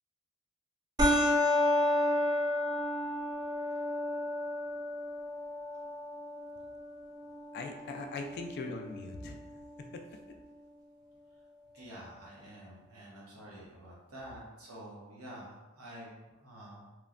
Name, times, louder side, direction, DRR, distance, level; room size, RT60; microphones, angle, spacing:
sound 1, 1.0-10.0, left 1 dB, 20° right, 0.4 m, -32 dB
voice 1, 7.5-9.6 9.9-10.0, left 3 dB, 50° left, 4 dB, 0.3 m, -40 dB
voice 2, 11.7-16.9, right 1 dB, 90° right, -5 dB, 0.9 m, -48 dB
3.0 x 2.1 x 2.4 m, 1.1 s
head